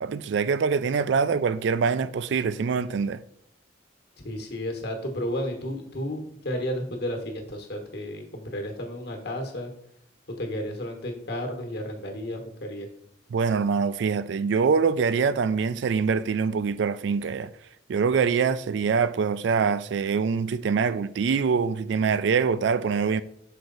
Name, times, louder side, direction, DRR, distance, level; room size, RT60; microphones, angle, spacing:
voice 1, 0.0-3.2 13.3-17.5 17.9-23.2, right 5 dB, 65° right, 0.3 m, -24 dB
voice 2, 4.2-9.7 10.3-12.9, equal, 55° left, 1.3 m, -32 dB
6.4 x 4.6 x 3.9 m
head